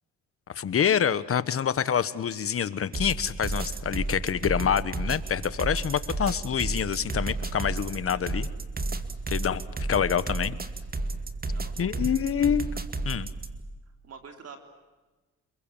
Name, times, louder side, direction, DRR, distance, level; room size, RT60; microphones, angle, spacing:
voice 1, 0.5-8.5 9.3-9.6 9.9-10.6 11.8-12.7 13.0-13.3, left 8 dB, 50° left, 15 dB, 1.2 m, -26 dB
sound 1, 2.9-13.6, right 2 dB, 30° right, 2.3 m, -32 dB
voice 2, 8.1-8.4 11.5-12.2 14.0-14.6, right 5 dB, 55° right, 5 dB, 3.7 m, -47 dB
29.5 x 22.0 x 7.3 m, 1.2 s
cardioid pair, 90°, 30 cm